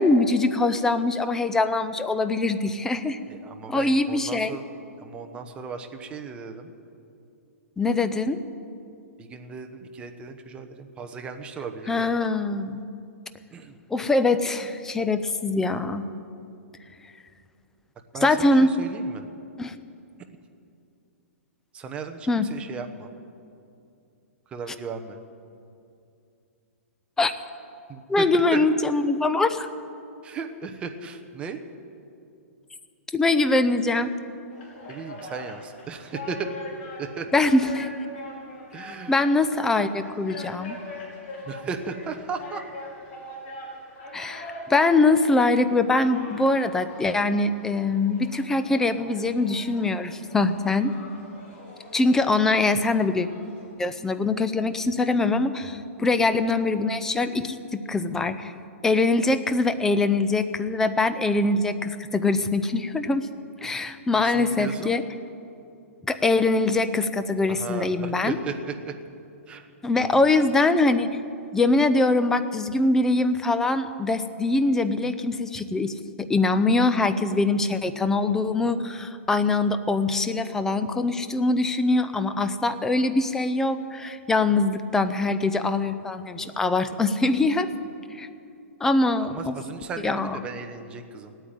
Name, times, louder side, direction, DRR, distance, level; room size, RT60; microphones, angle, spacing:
voice 1, 0.0-3.2 3.7-4.6 7.8-8.4 11.9-12.9 13.9-16.1 18.2-18.7 19.6-19.7 22.3-22.5 27.2-27.3 28.1-29.7 33.1-34.1 37.3-37.9 39.1-40.8 44.1-50.9 51.9-53.3 53.8-58.5 58.8-63.3 63.6-65.0 66.1-68.4 69.8-71.2 71.5-87.7 88.2-88.3 88.8-89.5 90.0-90.4, left 2 dB, 5° left, 10 dB, 0.5 m, -23 dB
voice 2, 3.3-4.6 5.0-6.7 9.2-12.1 13.5-13.8 18.1-19.3 21.7-23.1 24.5-25.2 27.9-28.3 28.5-28.6 30.2-31.6 34.9-36.5 37.0-37.3 38.7-39.1 41.4-42.6 64.1-65.0 67.5-69.0 69.5-69.7 70.0-70.3 89.2-91.4, right 5 dB, 15° right, 5 dB, 0.9 m, -36 dB
sound 1, 34.5-53.7, left 1 dB, 45° left, 5.1 m, -42 dB
17.5 x 9.2 x 9.0 m, 2.6 s
hypercardioid pair, 160°, 8 cm